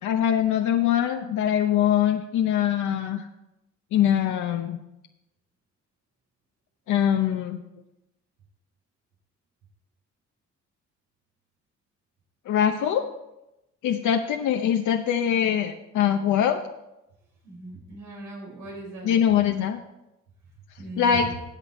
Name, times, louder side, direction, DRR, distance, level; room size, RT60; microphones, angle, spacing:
voice 1, 0.0-3.3 3.9-4.8 6.9-7.6 12.5-13.1 13.8-16.6 19.0-19.8 21.0-21.3, left 9 dB, 75° left, 3 dB, 0.8 m, -23 dB
voice 2, 17.4-19.1 20.8-21.3, right 2 dB, 85° right, -1 dB, 4.9 m, -38 dB
13.5 x 8.3 x 4.2 m, 0.91 s
cardioid pair, 90°, 30 cm